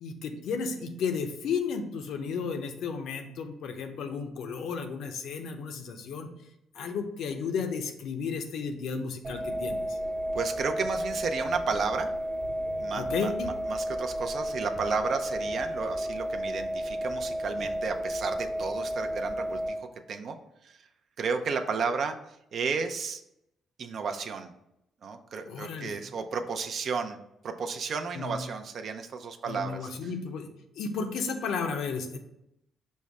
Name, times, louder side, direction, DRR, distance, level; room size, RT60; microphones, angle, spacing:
voice 1, 0.0-6.3 6.7-10.0 12.9-13.5 25.5-26.0 28.1-28.4 29.5-30.5 30.8-32.2, left 5 dB, 75° left, 5 dB, 0.6 m, -33 dB
sound 1, 9.2-19.7, equal, 35° right, 1.0 m, -32 dB
voice 2, 10.3-12.1 12.8-20.4 20.6-20.8 21.2-22.1 22.5-23.2 23.8-24.5 25.0-27.2 27.4-29.9, right 5 dB, 60° right, 6 dB, 0.5 m, -33 dB
5.3 x 2.1 x 4.7 m, 0.83 s
cardioid pair, 90°, 0 cm